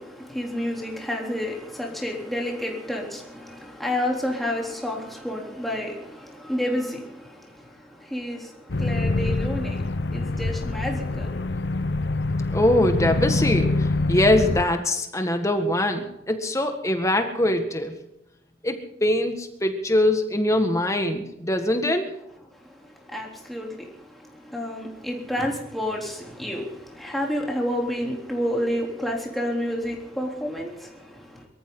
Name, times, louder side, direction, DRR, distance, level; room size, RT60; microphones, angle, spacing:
voice 1, 0.0-11.6 22.5-31.5, left 1 dB, ahead, 3.4 m, -30 dB
sound 1, 8.7-14.6, left 2 dB, 75° left, 0.8 m, -25 dB
voice 2, 12.5-17.9 18.6-22.1, left 1 dB, 15° left, 1.7 m, -23 dB
23.5 x 14.0 x 3.9 m
head